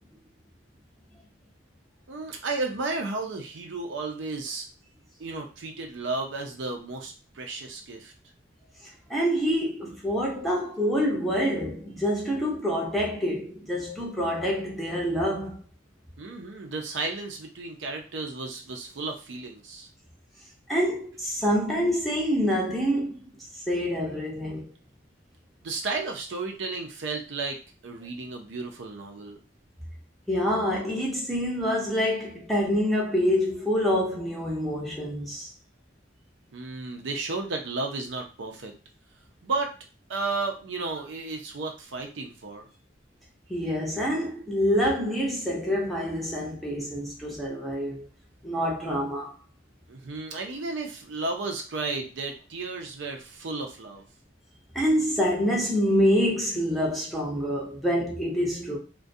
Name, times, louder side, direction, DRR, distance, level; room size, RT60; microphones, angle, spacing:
voice 1, 2.1-4.7 5.2-8.1 16.2-19.9 25.6-27.6 27.8-29.4 36.5-38.7 39.4-39.7 40.1-42.7 49.9-54.0, right 3 dB, 75° right, 0.5 m, -33 dB
voice 2, 9.1-15.6 20.7-23.2 23.5-24.7 30.3-35.5 43.5-48.1 48.4-49.3 54.7-58.8, equal, ahead, 0.6 m, -26 dB
2.3 x 2.2 x 2.6 m
head